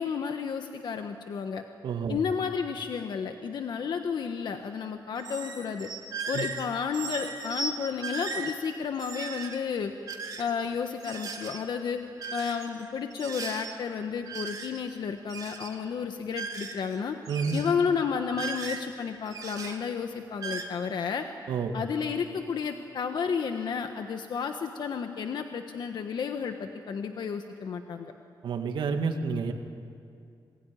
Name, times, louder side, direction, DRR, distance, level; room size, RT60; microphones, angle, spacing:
voice 1, 0.0-1.6 2.1-5.9 6.3-9.9 10.4-12.0 12.3-17.2 17.5-21.2 21.7-28.1, left 6 dB, 65° left, 6 dB, 1.3 m, -32 dB
voice 2, 1.8-2.2 6.3-6.5 17.3-17.6 21.5-21.8 28.4-29.5, right 5 dB, 85° right, 5 dB, 2.2 m, -29 dB
sound 1, 5.1-6.7 6.9-7.7 8.0-8.5 8.9-9.6 10.1-10.5 11.0-11.6 12.2-12.8 13.1-13.7 14.2-14.9 15.2-15.7 16.3-17.0 17.2-17.7 18.3-18.9 19.3-19.8 20.3-20.6, right 4 dB, 50° right, 2.7 m, -37 dB
27.0 x 21.0 x 10.0 m, 2.4 s
wide cardioid pair, 145°, 8 cm